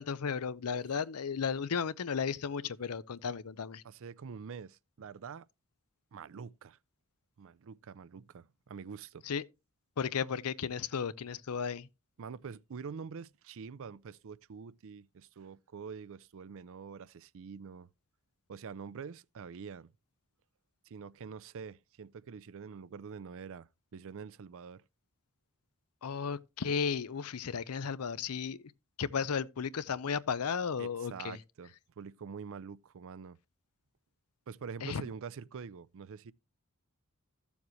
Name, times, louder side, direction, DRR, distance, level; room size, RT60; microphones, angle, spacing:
voice 1, 0.0-3.8 9.3-9.4 10.0-11.9 26.0-28.6 29.0-31.4 34.8-35.0, left 6 dB, 85° left, 0.6 m, -34 dB
voice 2, 3.8-5.4 6.1-6.8 7.4-9.2 12.2-17.9 18.5-19.9 20.8-24.8 30.8-33.4 34.5-36.3, right 6 dB, 65° right, 0.4 m, -46 dB
14.0 x 7.2 x 3.1 m
head